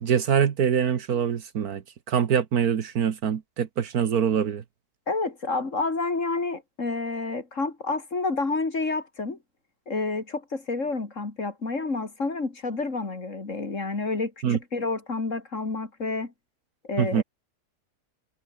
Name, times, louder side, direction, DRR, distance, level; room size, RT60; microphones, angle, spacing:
voice 1, 0.0-4.6 14.4-14.6 17.0-17.2, right 8 dB, 65° right, 1.7 m, -24 dB
voice 2, 5.1-9.4 9.9-16.3 16.9-17.2, left 3 dB, 45° left, 3.3 m, -29 dB
omnidirectional pair, 1.8 m